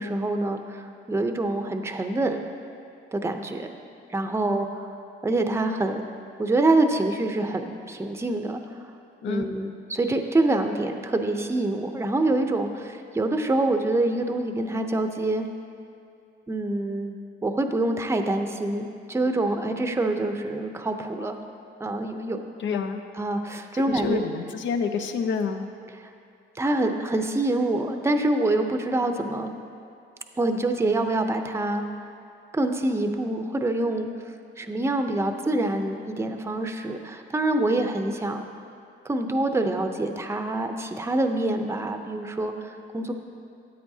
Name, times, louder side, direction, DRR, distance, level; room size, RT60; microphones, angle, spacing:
voice 1, 0.0-2.4 3.1-3.7 4.1-4.7 5.2-6.0 6.4-8.6 9.3-15.5 16.5-17.1 17.4-21.4 21.8-22.5 23.2-24.2 26.6-29.5 30.4-31.8 32.5-34.1 34.6-38.4 39.0-43.1, right 2 dB, 15° right, 5 dB, 0.6 m, -26 dB
voice 2, 22.6-23.0 23.7-25.7, left 5 dB, 70° left, 7 dB, 0.7 m, -28 dB
13.5 x 8.6 x 2.8 m, 2.4 s
cardioid pair, 90°, 20 cm